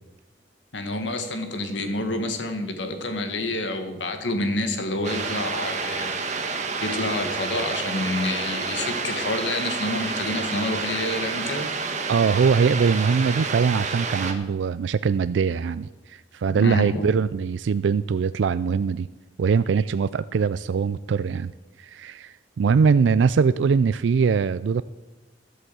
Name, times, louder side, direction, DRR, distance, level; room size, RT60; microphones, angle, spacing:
voice 1, 0.7-6.2 6.8-11.7 16.5-17.1, left 2 dB, 85° left, 7 dB, 1.9 m, -28 dB
sound 1, 5.0-14.3, right 4 dB, 40° right, 1.4 m, -29 dB
voice 2, 12.1-19.1 19.4-21.5 21.8-24.8, right 5 dB, 80° right, 15 dB, 0.3 m, -22 dB
12.5 x 8.2 x 7.8 m, 1.1 s
head